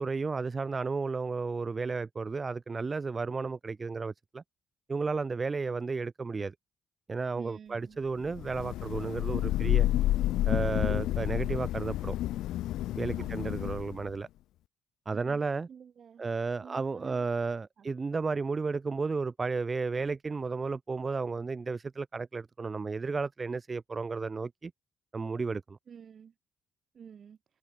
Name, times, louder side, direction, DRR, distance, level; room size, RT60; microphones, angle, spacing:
voice 1, 0.0-4.4 4.9-6.5 7.1-9.9 10.4-12.2 12.9-14.3 15.1-15.7 16.2-24.7 25.1-25.8, right 4 dB, 30° right, 2.3 m, -33 dB
voice 2, 7.3-8.0 13.1-13.5 15.1-15.4 15.7-16.2 16.6-17.3 17.8-17.9 25.9-26.3 26.9-27.4, right 7 dB, 55° right, 4.4 m, -50 dB
Thunder / Rain, 8.3-14.1, left 14 dB, 85° left, 1.0 m, -30 dB
cardioid pair, 90°, 0 cm